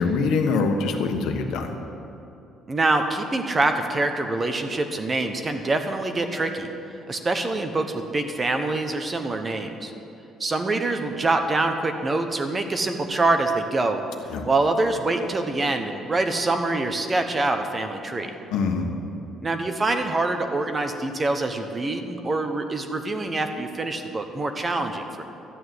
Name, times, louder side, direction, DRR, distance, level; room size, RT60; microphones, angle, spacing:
voice 1, 0.0-1.7 14.3-14.4 18.5-18.9, left 4 dB, 80° left, 4 dB, 1.4 m, -24 dB
voice 2, 2.7-6.7 7.1-9.9 10.4-14.0 14.4-18.3 19.4-25.2, right 2 dB, 25° right, 6 dB, 1.1 m, -25 dB
12.5 x 9.4 x 8.0 m, 2.8 s
cardioid pair, 130°, 0 cm